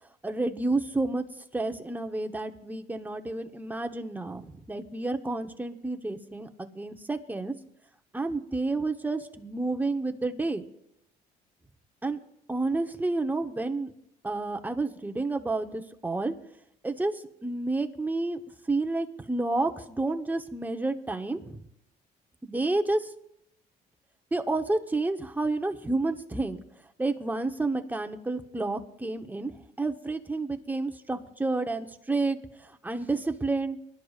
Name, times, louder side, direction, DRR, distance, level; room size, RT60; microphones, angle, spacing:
voice 1, 0.2-1.2 1.5-7.5 8.1-10.6 12.0-12.2 12.5-13.9 14.2-16.3 16.8-18.4 18.7-21.6 22.4-23.1 24.3-26.6 27.0-29.5 29.8-33.8, right 2 dB, 10° right, 5 dB, 0.9 m, -30 dB
23.0 x 11.5 x 2.4 m, 0.76 s
cardioid pair, 110°, 17 cm